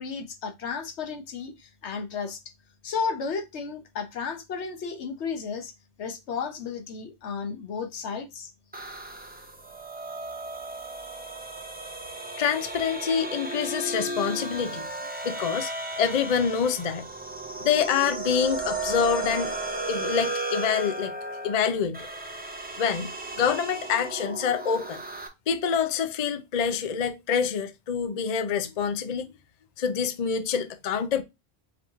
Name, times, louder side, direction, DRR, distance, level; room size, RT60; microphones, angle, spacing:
voice 1, 0.0-2.4 2.8-5.7 6.0-8.5, left 5 dB, 80° left, 1.1 m, -33 dB
sound 1, 8.7-25.3, right 2 dB, 10° right, 0.6 m, -35 dB
voice 2, 12.4-14.8 15.2-15.7 16.0-17.1 17.6-19.6 19.9-21.1 21.4-22.1 22.8-23.1 23.4-25.0 25.5-29.3 29.8-31.2, left 7 dB, 45° left, 0.6 m, -26 dB
4.8 x 3.0 x 3.5 m
omnidirectional pair, 1.1 m